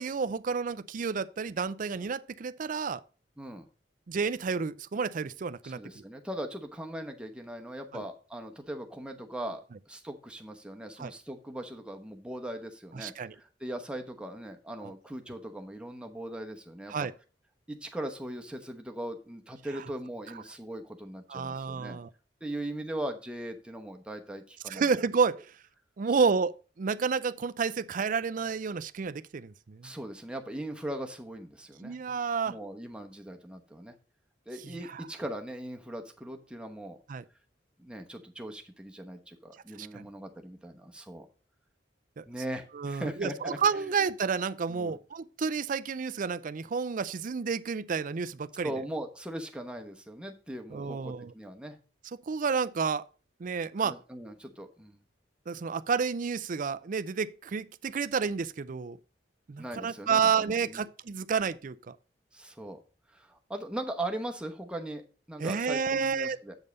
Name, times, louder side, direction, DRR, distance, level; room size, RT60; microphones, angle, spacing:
voice 1, 0.0-3.0 4.1-6.0 7.9-8.0 11.0-11.1 12.9-13.3 14.8-14.9 16.9-17.1 21.3-22.1 24.7-25.4 26.0-29.9 31.8-32.6 34.6-35.1 37.1-37.2 39.8-40.1 42.2-42.3 42.7-48.7 50.7-51.3 52.3-53.0 53.4-54.0 55.5-59.0 59.5-62.0 65.4-66.4, right 5 dB, 45° right, 0.4 m, -30 dB
voice 2, 5.6-17.0 17.7-22.0 22.4-24.9 26.3-26.4 29.8-32.0 32.4-33.9 34.5-37.0 37.8-41.3 42.2-43.9 44.7-45.0 48.6-51.8 53.8-55.0 59.6-60.8 62.3-62.8 63.1-66.5, right 1 dB, 5° right, 1.0 m, -39 dB
8.0 x 5.4 x 5.2 m
head